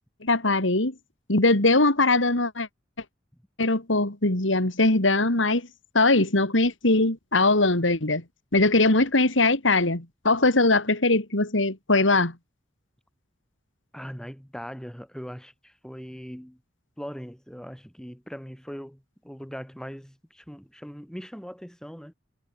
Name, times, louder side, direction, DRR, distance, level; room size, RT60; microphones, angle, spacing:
voice 1, 0.2-0.9 1.3-2.7 3.6-5.7 5.9-8.2 8.5-12.3, left 2 dB, 85° left, 3.3 m, -21 dB
voice 2, 13.9-16.6 17.0-22.1, equal, 5° left, 4.8 m, -40 dB
head